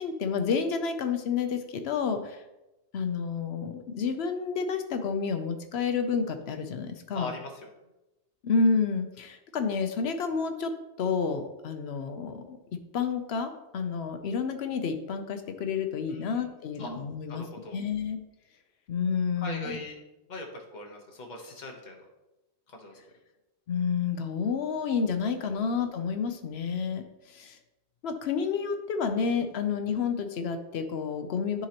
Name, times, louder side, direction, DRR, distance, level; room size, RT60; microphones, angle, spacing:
voice 1, 0.0-2.4 2.9-7.3 8.4-10.7 11.0-12.6 12.9-17.4 17.7-18.2 18.9-19.8 23.7-27.6 28.0-31.7, left 5 dB, 70° left, 7 dB, 0.9 m, -30 dB
voice 2, 7.1-7.7 16.1-16.4 16.8-16.9 17.3-17.8 19.4-20.0 20.3-22.0 22.7-23.0 25.5-25.7, left 2 dB, 40° left, 1 dB, 1.2 m, -40 dB
10.5 x 3.9 x 2.9 m, 0.99 s
omnidirectional pair, 1.2 m